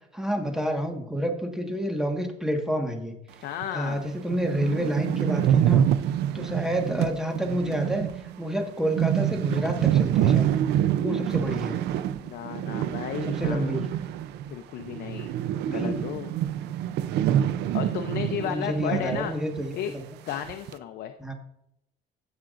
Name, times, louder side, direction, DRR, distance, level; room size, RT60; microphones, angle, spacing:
voice 1, 0.1-3.1 3.7-5.8 6.3-8.1 8.4-10.6 11.0-11.8 13.2-13.9 15.6-16.0 18.4-20.0 21.2-21.3, equal, 5° right, 3 dB, 1.5 m, -29 dB
voice 2, 3.4-4.0 12.2-13.9 14.5-15.3 15.7-16.4 17.7-19.4 19.7-19.9 20.3-21.1, left 10 dB, 70° left, 7 dB, 0.7 m, -33 dB
sound 1, 3.6-3.7 4.0-4.1 4.3-14.5 14.8-19.3 19.6-19.7 20.3-20.7, right 10 dB, 80° right, 0.5 m, -26 dB
16.0 x 5.9 x 2.5 m, 0.78 s
cardioid pair, 110°, 17 cm